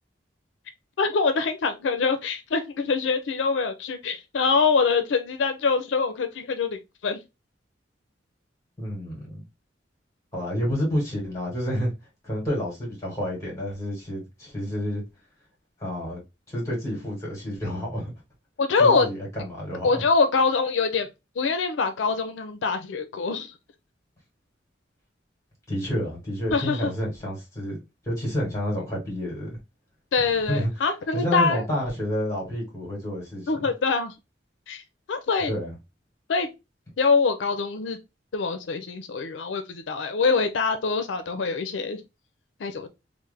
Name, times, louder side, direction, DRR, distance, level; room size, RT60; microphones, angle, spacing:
voice 1, 1.0-6.8 7.0-7.2 18.6-19.1 19.8-21.1 21.4-23.5 26.5-26.9 30.1-31.6 33.5-34.1 34.7-34.8 35.1-35.5 36.3-36.5 37.0-38.0 38.3-42.0 42.6-42.9, left 4 dB, 85° left, 0.4 m, -24 dB
voice 2, 8.8-9.4 10.3-11.9 12.2-15.0 15.8-16.2 16.5-18.1 18.8-20.0 25.7-29.6 30.2-30.7 31.1-33.5 35.5-35.7, equal, 15° left, 1.7 m, -29 dB
3.2 x 2.1 x 3.2 m
head